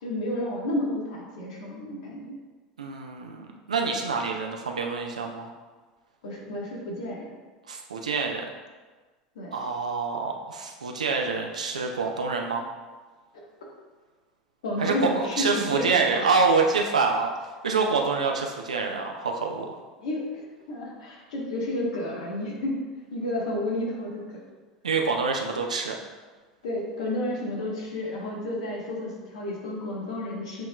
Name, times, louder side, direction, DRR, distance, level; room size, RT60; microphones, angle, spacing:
voice 1, 0.0-2.4 6.2-7.3 9.3-9.6 14.6-16.3 20.0-20.4 20.7-22.8 23.1-24.2 26.6-30.6, left 1 dB, 70° left, -3 dB, 1.3 m, -31 dB
voice 2, 2.8-5.5 7.7-8.4 9.5-12.6 14.8-17.3 17.6-19.8 24.8-26.0, right 4 dB, 85° right, 2 dB, 0.5 m, -26 dB
7.7 x 3.0 x 2.3 m, 1.3 s
hypercardioid pair, 80°, 4 cm